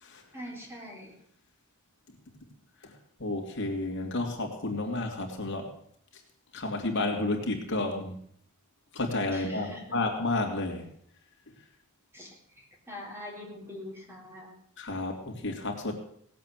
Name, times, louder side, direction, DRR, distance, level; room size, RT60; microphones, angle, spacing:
voice 1, 0.3-1.1 9.3-9.8 12.1-12.4 12.9-14.5, left 1 dB, 10° right, -1 dB, 4.0 m, -43 dB
voice 2, 3.2-5.7 6.5-8.1 8.9-10.8 14.8-15.9, left 2 dB, 60° left, 1 dB, 3.0 m, -31 dB
18.5 x 8.4 x 7.6 m, 0.64 s
head